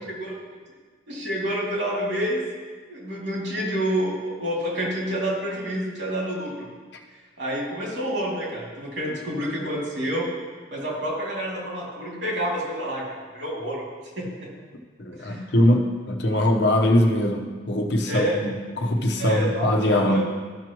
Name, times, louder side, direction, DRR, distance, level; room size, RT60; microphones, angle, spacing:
voice 1, 1.1-2.4 2.9-6.7 7.4-10.3 10.7-13.9 14.2-14.5 15.2-15.4 18.1-18.3 19.2-20.2, equal, 75° right, -4 dB, 2.5 m, -28 dB
voice 2, 15.0-20.2, left 1 dB, 65° left, 2 dB, 0.9 m, -22 dB
13.0 x 6.1 x 3.0 m, 1.5 s
head